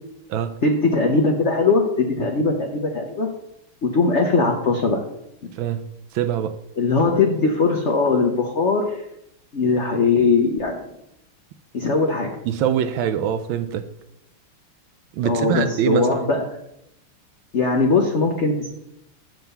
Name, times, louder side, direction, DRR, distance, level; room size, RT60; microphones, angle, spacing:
voice 1, 0.6-3.3 3.8-5.0 6.8-9.0 9.5-10.8 11.7-12.3 15.2-16.5 17.5-18.7, left 3 dB, 60° left, 2 dB, 0.7 m, -20 dB
voice 2, 6.1-6.6 12.4-13.9 15.1-16.2, right 9 dB, 75° right, 9 dB, 1.3 m, -24 dB
7.3 x 4.6 x 6.7 m, 0.80 s
omnidirectional pair, 2.4 m